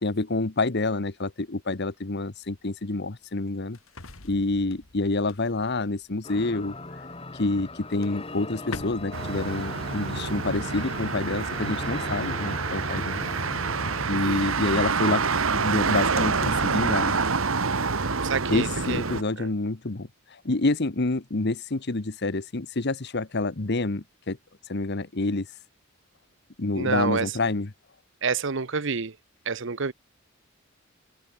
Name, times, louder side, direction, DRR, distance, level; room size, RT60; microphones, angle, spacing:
voice 1, 0.0-3.8 4.2-6.7 7.3-13.3 14.1-17.2 18.5-24.4 24.7-25.5 26.6-27.7, left 2 dB, 55° left, 1.1 m, -28 dB
sound 1, 2.4-6.7 7.6-7.7 8.0-10.5, left 3 dB, 80° left, 2.9 m, -45 dB
sound 2, 6.2-14.1, left 2 dB, 25° left, 2.5 m, -39 dB
Motor vehicle (road), 9.1-19.2, right 4 dB, 80° right, 1.5 m, -27 dB
voice 2, 14.1-14.5 18.2-19.1 19.4-19.5 26.7-27.3 28.2-29.1 29.5-29.9, right 5 dB, 60° right, 0.9 m, -28 dB
head